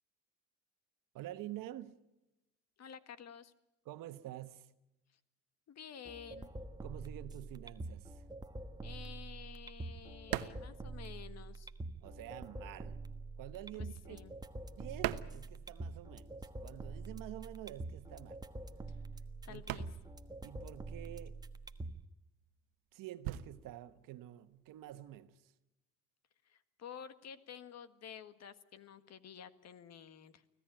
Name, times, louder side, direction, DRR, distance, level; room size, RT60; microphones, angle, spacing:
voice 1, 1.1-2.0 3.8-4.7 6.8-8.3 12.0-13.0 13.4-14.2 14.8-18.5 19.5-19.6 20.4-21.4 22.9-25.5, right 14 dB, 70° right, 1.4 m, -48 dB
voice 2, 2.8-3.5 5.7-6.5 8.8-11.7 13.7-14.3 19.4-19.9 26.4-30.4, left 8 dB, 50° left, 1.7 m, -51 dB
sound 1, 6.0-22.0, right 2 dB, 10° right, 1.3 m, -46 dB
sound 2, 8.5-11.8 12.1-16.2 16.5-25.2, right 15 dB, 90° right, 1.2 m, -45 dB
25.0 x 17.0 x 8.9 m
cardioid pair, 110°, 34 cm